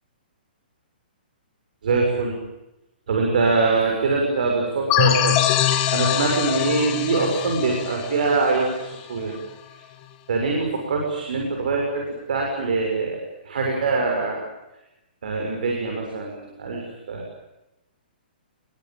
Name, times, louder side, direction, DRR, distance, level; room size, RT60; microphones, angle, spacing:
voice 1, 1.8-2.4 3.1-5.4 5.9-9.3 10.3-13.2 13.5-14.4 15.2-16.8 17.1-17.2, right 3 dB, 55° right, 1 dB, 6.8 m, -23 dB
sound 1, 4.9-9.4, left 12 dB, 20° left, 1.7 m, -23 dB
29.0 x 22.0 x 9.2 m, 0.93 s
hypercardioid pair, 180°, 5 cm